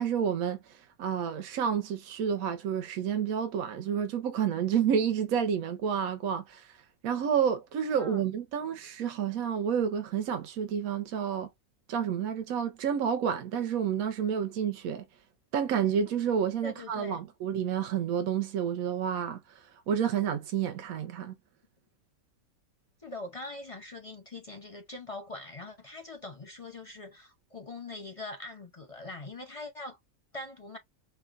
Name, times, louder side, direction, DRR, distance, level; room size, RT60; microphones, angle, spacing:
voice 1, 0.0-11.5 11.9-15.1 15.5-21.4, right 8 dB, 75° right, 1.1 m, -30 dB
voice 2, 16.6-17.2 23.0-30.0 30.3-30.8, left 2 dB, 35° left, 0.6 m, -42 dB
5.4 x 2.3 x 2.4 m
omnidirectional pair, 1.5 m